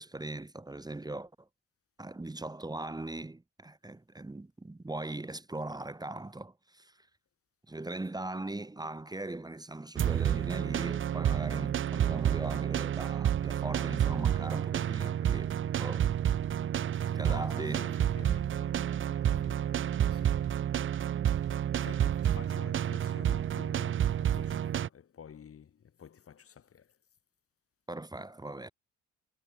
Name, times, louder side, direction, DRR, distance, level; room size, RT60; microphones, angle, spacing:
voice 1, 0.0-1.5 2.0-7.1 7.7-16.1 17.1-17.9 27.9-28.7, right 2 dB, 15° right, 1.5 m, -40 dB
sound 1, 10.0-24.9, right 10 dB, 40° right, 0.6 m, -30 dB
voice 2, 16.9-20.5 21.3-26.9, left 8 dB, 50° left, 2.1 m, -51 dB
cardioid pair, 90°, 30 cm